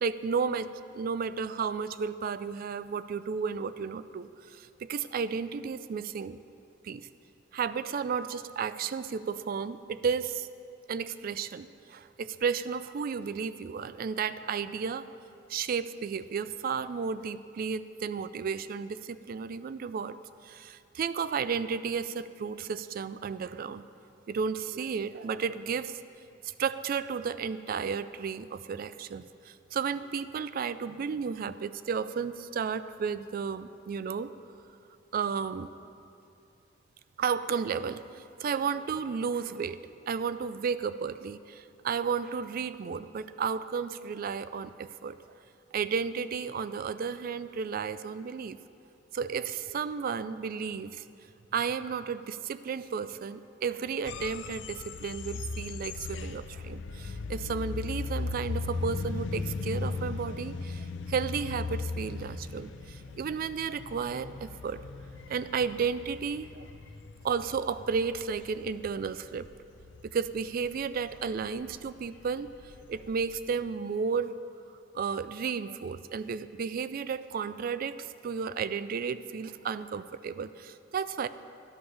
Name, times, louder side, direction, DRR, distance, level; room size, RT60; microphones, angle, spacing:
voice 1, 0.0-6.4 6.8-7.1 7.5-10.5 10.9-15.1 15.5-20.2 20.4-23.8 24.3-26.0 26.4-34.3 35.1-35.7 37.2-45.2 45.7-48.6 49.1-51.0 51.5-64.8 65.3-66.7 67.2-69.5 70.1-74.4 74.9-81.3, right 6 dB, 50° right, 14 dB, 0.3 m, -33 dB
sound 1, 54.1-73.6, left 4 dB, 70° left, 0.5 m, -38 dB
12.5 x 11.5 x 3.3 m, 2.6 s
head